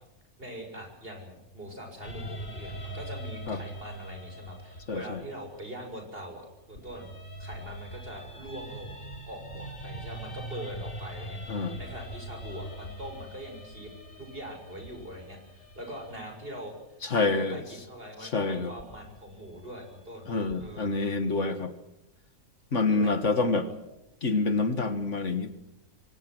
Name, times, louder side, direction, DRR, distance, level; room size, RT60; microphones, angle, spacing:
voice 1, 0.4-7.1 7.4-9.0 9.3-13.9 14.2-20.3 20.6-21.1 22.9-23.1 23.7-23.8, equal, 45° right, 4 dB, 7.0 m, -42 dB
sound 1, 2.0-6.2 6.8-16.8 18.8-20.7, equal, 40° left, 3.5 m, -42 dB
voice 2, 4.9-5.2 11.5-11.8 17.0-17.6 18.2-18.7 20.3-21.7 22.7-23.7 24.2-25.5, left 3 dB, 60° left, 10 dB, 2.0 m, -27 dB
28.0 x 24.0 x 6.3 m, 0.90 s
omnidirectional pair, 1.4 m